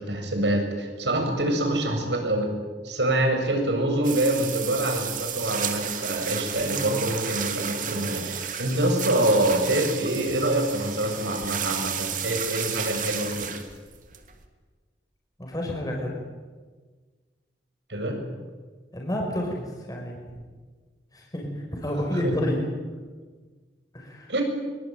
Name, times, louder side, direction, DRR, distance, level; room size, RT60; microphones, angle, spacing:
voice 1, 0.0-2.5 2.8-13.5 17.9-18.2 22.2-22.3 24.3-24.4, right 1 dB, 80° right, 3 dB, 7.4 m, -25 dB
sound 1, 4.0-14.4, right 8 dB, 50° right, 2.8 m, -32 dB
voice 2, 6.6-6.9 15.4-16.1 18.9-20.2 21.1-21.5 21.7-22.6 23.9-24.3, equal, 20° left, 0 dB, 5.6 m, -30 dB
25.0 x 24.0 x 9.4 m, 1.4 s
head